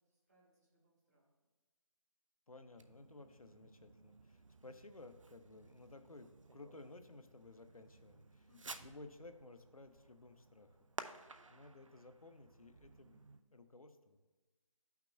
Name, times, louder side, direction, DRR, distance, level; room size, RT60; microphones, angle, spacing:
voice 1, 0.0-1.3 8.4-8.7 11.3-11.6, left 2 dB, 30° right, -5 dB, 1.9 m, -72 dB
voice 2, 2.5-8.5 8.8-10.8 11.1-13.2 13.5-14.2, left 2 dB, 85° left, 9 dB, 0.7 m, -56 dB
Fireworks, 2.7-13.4, right 3 dB, 65° right, 0.5 m, -55 dB
11.5 x 5.8 x 2.2 m, 1.2 s
figure-of-eight pair, 160°, 18 cm